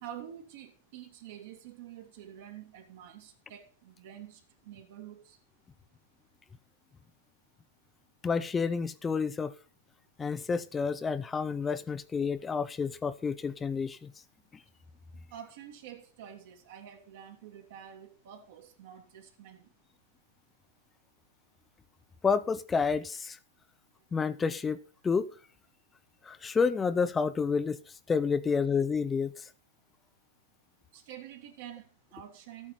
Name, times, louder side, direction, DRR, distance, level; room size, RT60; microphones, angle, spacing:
voice 1, 0.0-5.4 15.3-19.7 30.9-32.7, right 10 dB, 55° right, 2.5 m, -48 dB
voice 2, 8.2-9.5 10.2-14.1 22.2-23.4 24.1-24.8 25.0-25.3 26.2-27.8 28.1-29.4, left 5 dB, 10° left, 0.5 m, -29 dB
13.0 x 9.0 x 4.2 m
supercardioid pair, 155°, 0 cm